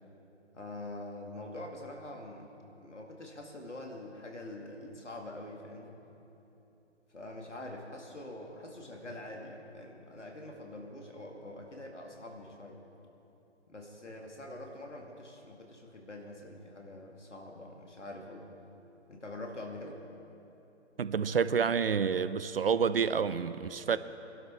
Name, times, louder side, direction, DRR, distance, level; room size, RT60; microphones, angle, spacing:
voice 1, 0.5-6.0 7.1-12.8 13.7-18.5 19.1-20.0, left 1 dB, 80° left, 1 dB, 2.2 m, -45 dB
voice 2, 21.0-24.0, right 6 dB, 55° right, 14 dB, 0.5 m, -28 dB
22.5 x 12.0 x 3.5 m, 3.0 s
figure-of-eight pair, 135°, 35 cm